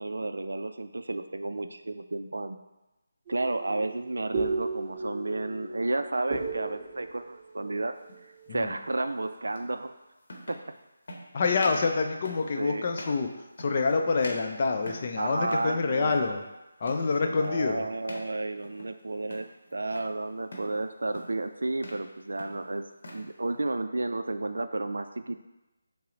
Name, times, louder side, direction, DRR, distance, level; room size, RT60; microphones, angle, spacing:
voice 1, 0.0-2.6 3.3-7.9 8.5-9.9 10.5-10.6 12.6-12.8 15.2-16.2 17.0-22.8 23.1-25.4, right 2 dB, 75° right, 8 dB, 0.3 m, -32 dB
sound 1, 3.3-8.9, right 3 dB, 25° right, 0.7 m, -36 dB
sound 2, 8.0-8.2 9.6-9.7 10.2-10.7 11.1-11.3 11.6-11.9 12.3-12.5 12.9-13.2 13.6-13.9 14.2-15.2 15.5-15.8 16.0-16.4 16.9-17.1 17.4-17.7 18.1-18.3 18.6-19.0 19.3-20.1 20.5-20.8 21.1-21.4 21.7-22.1 22.4-23.3, left 1 dB, 60° left, 0.9 m, -43 dB
voice 2, 11.3-13.3 13.6-16.4 16.8-17.9, left 4 dB, 40° left, 3 dB, 0.5 m, -27 dB
5.5 x 2.1 x 3.8 m, 1.0 s
figure-of-eight pair, 160°, 0 cm